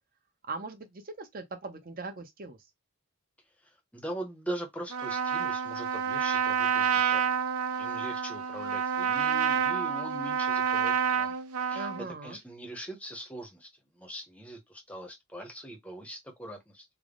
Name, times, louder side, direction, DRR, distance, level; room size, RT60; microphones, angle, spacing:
voice 1, 0.5-2.6 11.7-12.4, right 3 dB, 40° right, 0.6 m, -40 dB
voice 2, 3.6-7.3 7.8-11.4 11.7-11.9 12.2-13.7 14.0-16.8, right 1 dB, 5° left, 0.7 m, -41 dB
Trumpet, 4.9-12.1, right 7 dB, 85° right, 0.6 m, -28 dB
3.4 x 2.0 x 3.6 m
head